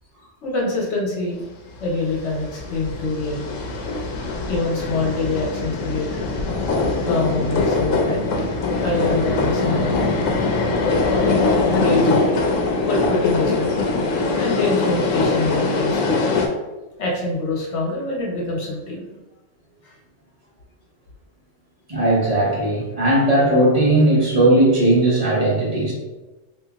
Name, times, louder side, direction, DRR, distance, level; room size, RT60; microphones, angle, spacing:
voice 1, 0.4-1.4 1.8-3.4 4.5-6.1 7.0-8.3 8.8-10.0 11.7-12.4 12.8-13.7 14.4-16.2 17.0-19.1 19.8-19.9, left 3 dB, 70° left, -2 dB, 1.3 m, -25 dB
sound 1, 2.1-16.5, left 3 dB, 85° left, 1.0 m, -22 dB
voice 2, 21.9-25.9, right 1 dB, 30° right, -6 dB, 1.1 m, -17 dB
2.9 x 2.7 x 3.4 m, 1.1 s
omnidirectional pair, 1.3 m